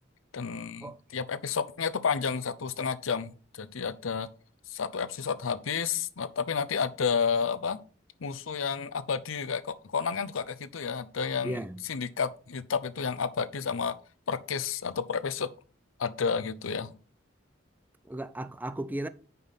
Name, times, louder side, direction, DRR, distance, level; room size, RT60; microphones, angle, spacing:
voice 1, 0.3-4.3 4.7-7.8 8.2-13.9 14.3-15.5 16.0-16.9, left 6 dB, 90° left, 0.7 m, -31 dB
voice 2, 11.4-11.8 18.1-19.1, right 1 dB, 10° right, 0.4 m, -35 dB
9.4 x 5.4 x 4.0 m
head